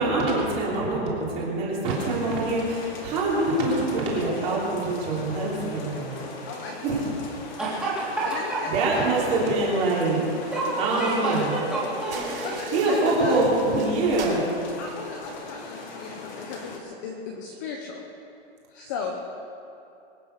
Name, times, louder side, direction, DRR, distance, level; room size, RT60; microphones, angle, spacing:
voice 1, 0.0-6.2 6.8-7.1 8.7-10.2 10.8-11.5 12.7-14.5, right 2 dB, 20° right, -5 dB, 3.2 m, -24 dB
sound 1, 1.8-16.8, left 3 dB, 40° left, 2.5 m, -40 dB
voice 2, 6.5-7.1 8.2-9.1 10.8-11.0 12.4-13.4 14.8-18.0 18.7-19.3, left 4 dB, 15° left, 1 dB, 0.8 m, -36 dB
voice 3, 7.6-8.6 9.2-9.3 10.5-12.5, right 2 dB, ahead, -9 dB, 3.2 m, -29 dB
sound 2, 12.1-15.4, right 5 dB, 85° right, 3.7 m, -42 dB
23.5 x 9.3 x 6.5 m, 2.7 s
hypercardioid pair, 175°, 33 cm